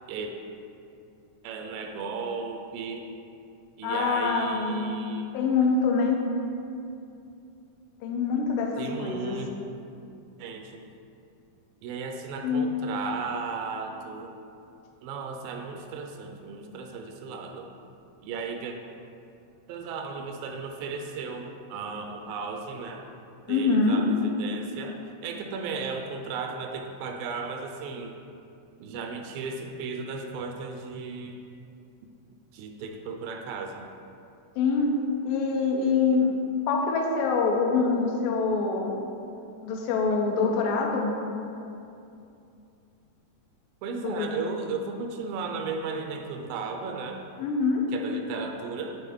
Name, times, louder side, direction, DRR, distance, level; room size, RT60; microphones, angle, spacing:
voice 1, 1.4-3.1 3.8-5.3 8.8-9.5 10.4-10.8 11.8-14.3 15.0-17.7 18.2-18.8 19.7-23.1 23.5-28.2 28.8-31.4 32.5-33.9 43.8-47.2 47.9-49.0, right 4 dB, 85° right, 4 dB, 2.3 m, -35 dB
voice 2, 3.8-5.0 5.3-6.2 8.0-9.4 12.4-12.7 23.5-24.0 34.6-34.9 35.2-36.3 36.7-39.0 39.6-41.1 44.0-44.4 47.4-47.8, left 4 dB, 80° left, 1 dB, 2.3 m, -25 dB
11.0 x 3.7 x 3.5 m, 2.6 s
omnidirectional pair, 4.0 m